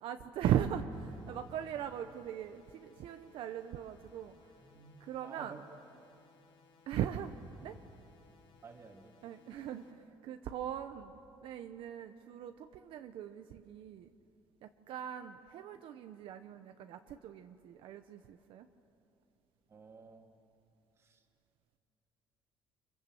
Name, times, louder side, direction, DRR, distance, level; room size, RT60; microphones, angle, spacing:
voice 1, 0.0-4.3 5.0-5.6 6.9-7.3 7.6-7.7 9.2-11.2 11.4-14.1 14.6-18.7, right 10 dB, 65° right, 7 dB, 0.9 m, -39 dB
sound 1, 0.9-9.9, left 5 dB, 60° left, 3.8 m, -66 dB
voice 2, 4.6-5.0 5.2-5.6 8.6-9.1 19.7-20.3 21.0-21.2, right 4 dB, 30° right, 4 dB, 2.2 m, -52 dB
28.5 x 26.0 x 7.7 m, 2.6 s
cardioid pair, 165°, 10 cm